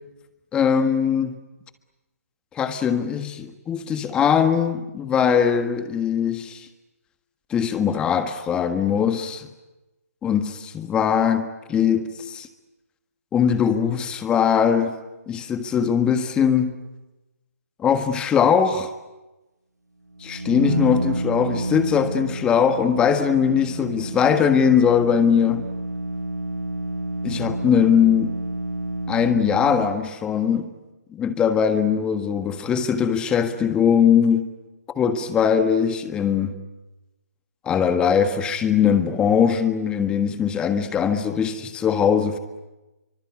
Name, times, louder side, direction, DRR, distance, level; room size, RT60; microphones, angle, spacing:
voice 1, 0.5-1.3 2.5-6.7 7.5-9.5 10.2-10.4 10.7-12.5 13.3-15.0 15.3-16.7 17.8-18.9 20.2-25.7 27.2-28.3 29.1-30.7 31.1-34.5 34.9-36.6 37.6-42.4, left 7 dB, 10° left, 1.5 m, -21 dB
sound 1, 20.2-30.1, right 1 dB, 90° right, 1.3 m, -29 dB
29.0 x 24.5 x 8.5 m
figure-of-eight pair, 145°, 9 cm